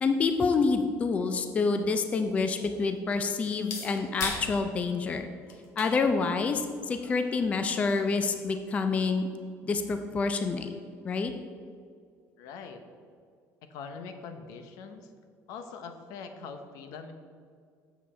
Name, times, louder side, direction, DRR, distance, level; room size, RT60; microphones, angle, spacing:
voice 1, 0.0-5.3 5.8-9.3 9.6-10.7 11.0-11.3, left 4 dB, 20° left, 7 dB, 0.4 m, -27 dB
sound 1, 1.7-9.2, left 4 dB, 55° left, 1.2 m, -43 dB
voice 2, 12.4-12.8 13.7-15.1 15.5-17.1, left 5 dB, 75° left, 7 dB, 0.8 m, -42 dB
7.4 x 7.1 x 4.2 m, 2.2 s
cardioid pair, 170°, 6 cm